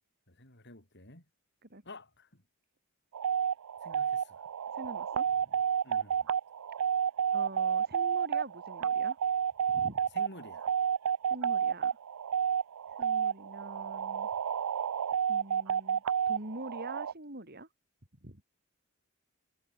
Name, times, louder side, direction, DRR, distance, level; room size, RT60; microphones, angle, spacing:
voice 1, 0.3-1.2 1.8-2.4 3.8-4.4 5.8-6.3 10.1-10.7, left 2 dB, 50° left, 6.3 m, -51 dB
sound 1, 3.1-17.1, right 8 dB, 80° right, 0.4 m, -30 dB
voice 2, 4.7-5.5 7.3-9.2 9.7-10.0 11.3-12.0 13.0-14.3 15.3-17.7 18.2-18.4, right 2 dB, 45° right, 4.6 m, -45 dB
head